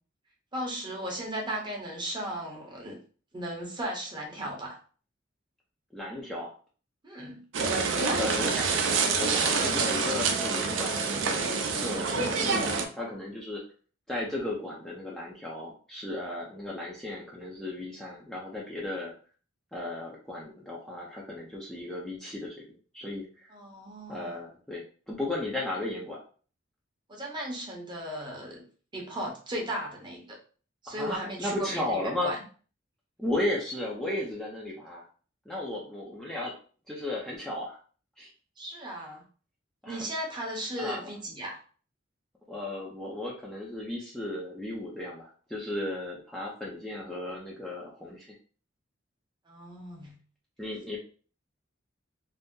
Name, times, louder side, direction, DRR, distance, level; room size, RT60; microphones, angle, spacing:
voice 1, 0.5-3.0 3.3-4.8 7.0-7.4 7.9-8.2 23.5-24.3 27.1-28.6 28.9-30.4 30.8-32.4 38.6-39.2 39.9-41.6 49.5-50.2, right 1 dB, 25° right, -1 dB, 0.8 m, -36 dB
voice 2, 5.9-6.5 8.2-8.6 9.2-13.6 14.1-19.1 19.7-23.3 24.1-26.2 30.9-32.3 33.2-35.1 35.5-36.5 36.9-37.8 38.2-38.3 39.8-40.1 40.8-41.0 42.5-48.3 50.6-51.0, left 1 dB, 5° left, -5 dB, 0.5 m, -35 dB
sound 1, 7.5-12.8, right 4 dB, 85° right, 0.5 m, -27 dB
2.6 x 2.0 x 3.5 m, 0.41 s
head